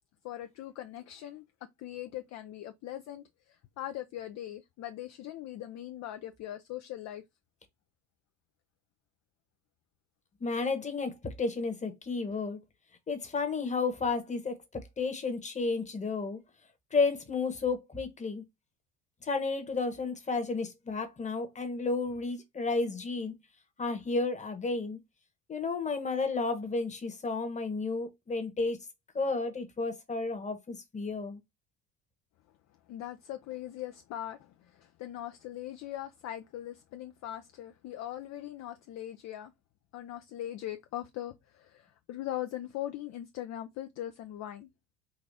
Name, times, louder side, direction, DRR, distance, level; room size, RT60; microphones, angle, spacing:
voice 1, 0.2-7.2 32.9-39.5 39.9-44.7, left 13 dB, 45° left, 0.5 m, -40 dB
voice 2, 10.4-12.6 13.1-16.4 16.9-18.4 19.2-23.3 23.8-25.0 25.5-28.8 29.1-31.4, left 3 dB, 20° left, 1.1 m, -32 dB
3.9 x 2.4 x 3.3 m
supercardioid pair, 90°, 38 cm